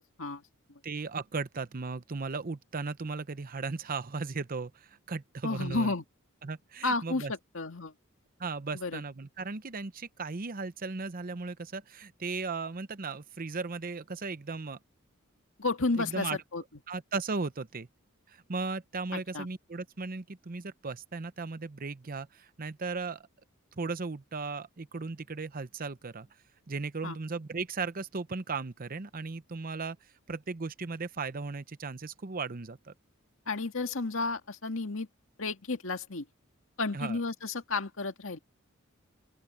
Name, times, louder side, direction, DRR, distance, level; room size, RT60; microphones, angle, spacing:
voice 1, 0.8-5.9 6.4-7.3 8.4-14.8 16.0-16.4 16.9-17.9 18.3-23.2 23.8-26.3 26.7-30.0 30.3-32.9 36.9-37.2, right 4 dB, 45° right, 0.8 m, -36 dB
voice 2, 5.4-6.0 6.8-7.9 8.7-9.0 15.6-16.6 19.1-19.5 27.0-27.2 33.5-35.1 35.4-36.3 36.8-38.4, left 3 dB, 70° left, 2.1 m, -32 dB
open air
head